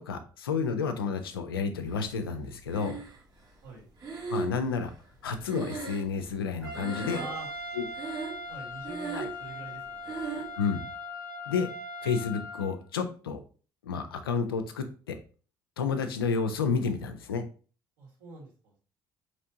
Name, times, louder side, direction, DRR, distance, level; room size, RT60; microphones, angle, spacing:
voice 1, 0.0-3.0 4.3-4.9 5.2-7.2 7.8-7.9 9.1-9.3 10.6-10.9 11.5-11.7 12.0-13.4 13.8-15.2 15.8-17.4, left 5 dB, 80° left, 8 dB, 0.4 m, -30 dB
Breathing, 2.7-3.4 4.0-6.5 6.7-7.5 7.9-8.5 8.8-9.5 10.0-10.5, right 4 dB, 35° right, 1.1 m, -37 dB
Trumpet, 6.6-12.7, left 2 dB, 85° right, 0.8 m, -40 dB
voice 2, 7.1-7.5 8.5-10.2 18.0-18.8, right 3 dB, 70° right, -4 dB, 1.7 m, -44 dB
4.2 x 3.0 x 2.7 m, 0.38 s
figure-of-eight pair, 50°, 12 cm